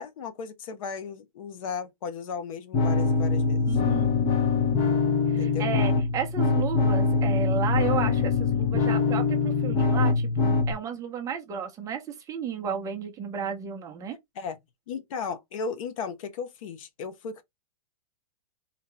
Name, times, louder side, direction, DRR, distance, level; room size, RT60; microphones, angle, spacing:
voice 1, 0.0-3.8 5.4-5.7 14.3-14.6 14.9-17.4, left 5 dB, 60° left, 1.1 m, -35 dB
sound 1, 2.7-10.7, left 4 dB, 25° left, 0.8 m, -23 dB
voice 2, 3.7-4.1 5.3-14.2, right 7 dB, 15° right, 0.8 m, -33 dB
4.2 x 2.9 x 3.4 m
hypercardioid pair, 150°, 20 cm